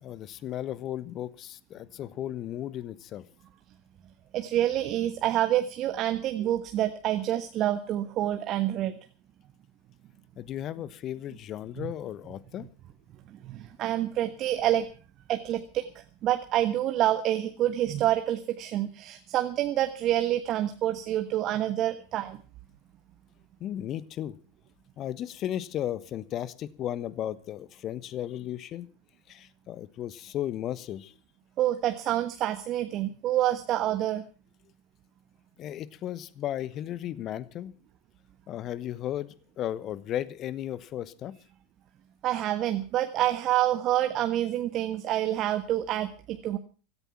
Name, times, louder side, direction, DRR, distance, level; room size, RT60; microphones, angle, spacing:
voice 1, 0.0-3.2 10.4-12.7 23.6-24.3 25.0-28.9 29.3-31.1 35.6-37.7 38.5-41.3, left 11 dB, 40° left, 18 dB, 1.1 m, -35 dB
voice 2, 4.3-9.0 11.8-11.9 13.3-14.9 15.3-15.9 16.2-22.4 31.6-34.2 42.2-46.6, right 13 dB, 40° right, 8 dB, 1.3 m, -27 dB
16.5 x 14.0 x 5.8 m, 0.38 s
figure-of-eight pair, 80°, 0 cm